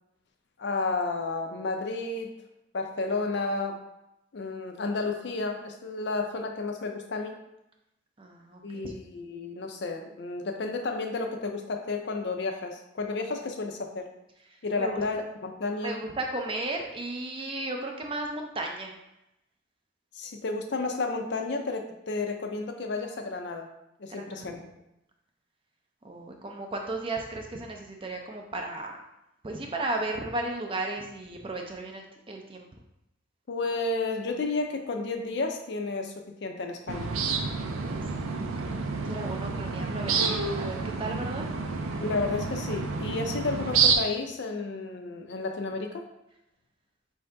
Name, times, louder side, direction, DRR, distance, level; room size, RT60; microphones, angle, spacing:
voice 1, 0.6-2.3 2.7-3.8 4.3-7.4 8.6-14.1 14.6-16.0 20.1-23.7 24.0-24.7 33.5-36.1 36.4-37.1 42.0-46.0, left 3 dB, 55° left, 4 dB, 0.5 m, -32 dB
voice 2, 8.2-8.9 14.5-15.0 15.8-18.9 24.1-24.6 26.0-29.0 29.4-32.7 37.6-41.5, right 2 dB, 25° right, 2 dB, 0.4 m, -35 dB
sound 1, 36.9-43.9, right 5 dB, 90° right, 0.5 m, -29 dB
4.6 x 2.7 x 3.3 m, 0.87 s
head